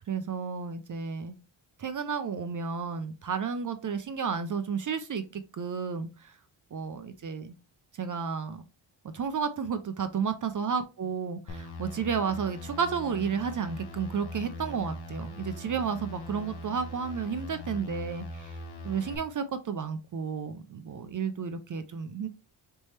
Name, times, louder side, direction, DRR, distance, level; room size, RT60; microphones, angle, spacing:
voice 1, 0.1-1.4 1.8-6.4 6.7-7.5 7.9-8.6 9.1-18.6 18.8-22.3, right 6 dB, 40° right, 10 dB, 0.4 m, -32 dB
sound 1, 11.5-19.2, left 1 dB, 55° left, 0.9 m, -41 dB
4.1 x 3.3 x 3.1 m, 0.29 s
wide cardioid pair, 155°, 49 cm